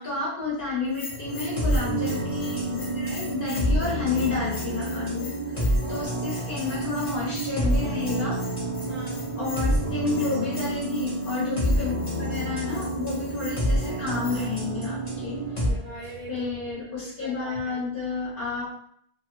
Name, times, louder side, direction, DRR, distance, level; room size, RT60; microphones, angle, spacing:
voice 1, 0.0-5.3 5.6-8.4 9.4-15.4 16.3-18.7, left 4 dB, 55° left, -6 dB, 1.1 m, -31 dB
Bell, 0.9-14.6, left 4 dB, 75° left, 0.8 m, -44 dB
sound 1, 1.1-4.9 5.9-10.8 12.3-16.7, right 2 dB, 90° right, 1.0 m, -44 dB
sound 2, 1.2-15.7, right 1 dB, 30° left, 1.0 m, -28 dB
voice 2, 8.9-9.3 15.6-16.5 17.0-17.9, right 1 dB, 45° right, -2 dB, 0.6 m, -42 dB
2.7 x 2.6 x 2.9 m, 0.66 s
omnidirectional pair, 1.1 m